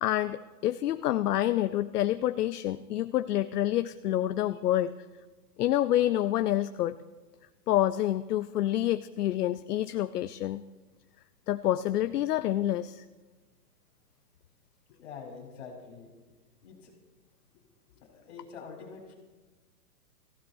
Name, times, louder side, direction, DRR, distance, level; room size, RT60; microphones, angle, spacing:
voice 1, 0.0-5.0 5.6-7.0 7.7-10.6 11.5-13.0, left 13 dB, 75° left, 11 dB, 0.6 m, -28 dB
voice 2, 15.0-16.1 16.6-16.9 17.9-19.1, left 5 dB, 45° left, -1 dB, 4.3 m, -46 dB
20.0 x 15.5 x 2.7 m, 1.3 s
hypercardioid pair, 175°, 47 cm